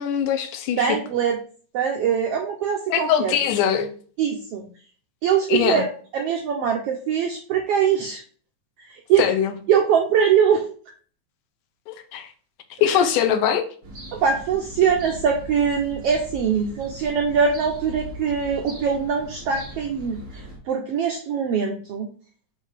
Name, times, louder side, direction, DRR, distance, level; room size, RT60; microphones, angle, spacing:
voice 1, 0.0-0.9 2.9-3.9 5.5-5.8 9.2-9.5 11.9-12.3 12.7-13.7, left 8 dB, 90° left, 2.3 m, -22 dB
voice 2, 0.8-1.4 1.7-3.3 4.2-4.6 5.2-5.8 6.1-8.2 8.8-9.3 9.7-10.7 14.1-22.1, right 7 dB, 80° right, 1.3 m, -22 dB
sound 1, 13.8-20.6, right 1 dB, 35° right, 1.1 m, -39 dB
7.0 x 2.7 x 5.0 m
omnidirectional pair, 3.6 m